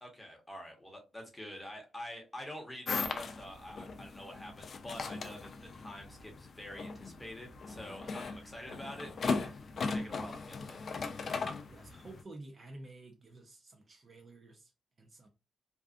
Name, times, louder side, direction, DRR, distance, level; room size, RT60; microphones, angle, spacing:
voice 1, 0.0-11.0, left 1 dB, 10° left, 1.0 m, -47 dB
sound 1, 2.9-12.2, left 4 dB, 50° left, 0.4 m, -38 dB
voice 2, 11.7-14.7 15.0-15.3, right 2 dB, 40° right, 0.5 m, -51 dB
2.5 x 2.3 x 2.5 m
cardioid pair, 95°, 0 cm